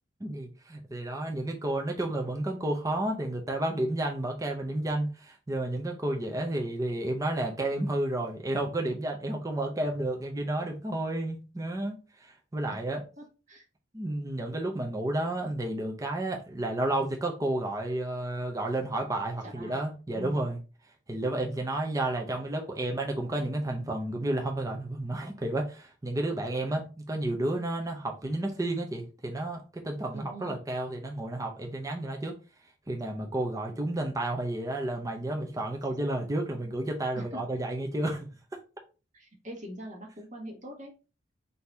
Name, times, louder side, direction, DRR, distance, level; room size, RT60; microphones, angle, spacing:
voice 1, 0.2-13.0 13.9-20.6 21.1-32.4 32.9-38.3, right 1 dB, 15° right, 1 dB, 0.6 m, -31 dB
voice 2, 13.2-13.6 19.4-20.5 30.1-30.6 37.1-37.4 39.1-40.9, equal, 40° right, 0 dB, 1.2 m, -43 dB
3.8 x 2.7 x 4.4 m, 0.32 s
head